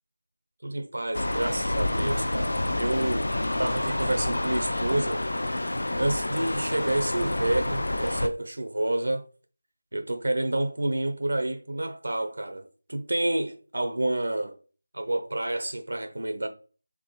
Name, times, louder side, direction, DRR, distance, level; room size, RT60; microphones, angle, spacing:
voice 1, 0.6-3.3 3.6-5.2 6.0-9.2 9.9-14.6 14.9-16.5, right 1 dB, 75° right, 0.7 m, -29 dB
sound 1, 1.1-8.3, left 1 dB, 80° left, 0.5 m, -28 dB
3.7 x 3.4 x 4.0 m
figure-of-eight pair, 180°, 0 cm